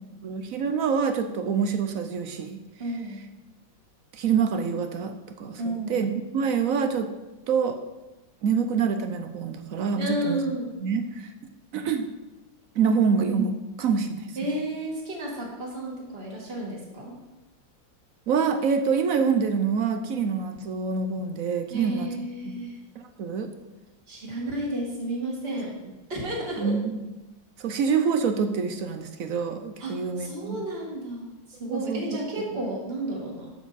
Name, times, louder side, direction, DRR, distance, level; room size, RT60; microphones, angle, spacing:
voice 1, 0.2-2.6 4.1-7.1 7.5-7.8 8.4-10.4 10.8-11.3 11.7-12.1 12.7-14.3 18.3-22.1 22.4-22.6 23.0-23.5 26.6-26.8 27.6-30.6 31.7-32.0, right 6 dB, 65° right, 8 dB, 0.8 m, -26 dB
voice 2, 2.8-3.3 5.6-6.0 10.0-10.7 14.4-17.1 21.7-22.8 24.1-25.7 26.1-26.7 29.8-29.9 30.2-33.5, right 1 dB, 30° right, -3 dB, 2.4 m, -32 dB
12.0 x 7.3 x 4.2 m, 1.1 s
omnidirectional pair, 2.1 m